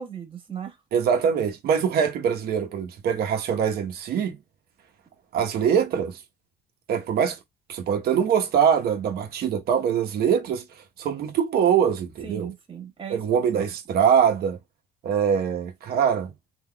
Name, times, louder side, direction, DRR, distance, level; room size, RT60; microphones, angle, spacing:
voice 1, 0.0-0.8 12.2-13.6, right 8 dB, 30° right, 1.6 m, -37 dB
voice 2, 0.9-4.4 5.3-6.2 6.9-7.4 7.7-10.6 11.0-12.5 13.1-14.6 15.0-16.3, right 7 dB, 65° right, 1.1 m, -23 dB
3.8 x 2.7 x 2.3 m
cardioid pair, 110°, 17 cm